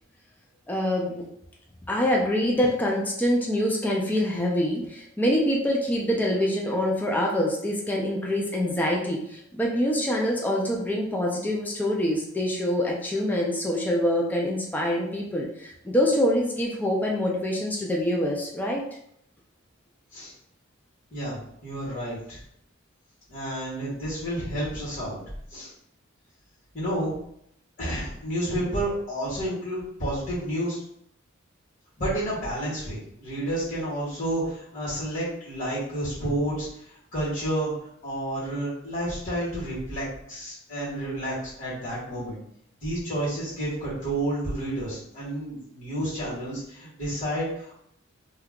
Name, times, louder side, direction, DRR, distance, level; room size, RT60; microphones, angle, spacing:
voice 1, 0.7-1.3 1.9-18.8, equal, 10° left, -2 dB, 0.4 m, -25 dB
voice 2, 21.1-22.4 23.3-25.2 25.5-25.7 26.7-27.2 27.8-30.8 32.0-37.7 38.0-42.4 42.8-47.8, right 1 dB, 40° left, -8 dB, 1.3 m, -30 dB
2.8 x 2.3 x 3.5 m, 0.72 s
head